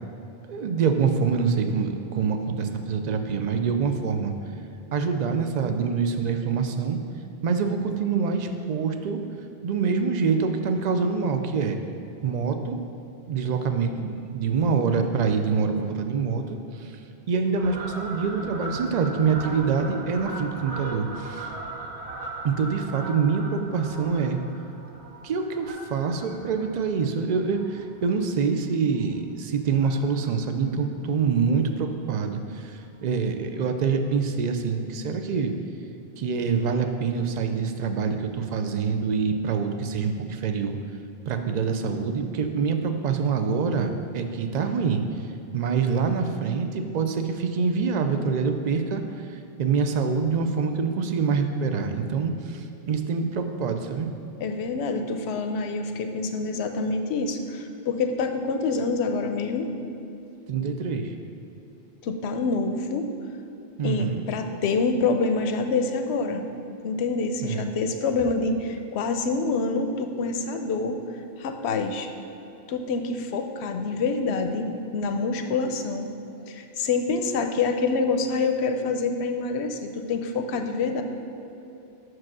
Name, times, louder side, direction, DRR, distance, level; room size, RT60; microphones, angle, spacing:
voice 1, 0.5-4.3 4.9-7.0 7.4-9.2 9.6-11.8 12.2-12.8 13.3-17.0 17.3-21.5 22.4-24.4 25.2-35.5 36.2-40.8 41.3-45.0 45.5-54.1 60.5-61.2 63.8-64.3 67.4-67.7, right 5 dB, 55° right, 6 dB, 0.5 m, -25 dB
Fowl, 17.6-28.4 28.8-29.0 29.8-30.3 30.6-30.7 30.9-31.0 31.3-31.4 31.8-31.9 32.9-33.0 33.6-33.7, right 2 dB, 90° right, 1.2 m, -39 dB
voice 2, 54.4-59.7 62.0-63.1 63.8-66.4 66.8-71.0 71.4-72.1 72.7-76.1 76.5-81.0, left 4 dB, 90° left, 6 dB, 0.9 m, -26 dB
6.1 x 4.7 x 6.1 m, 2.9 s
omnidirectional pair, 1.1 m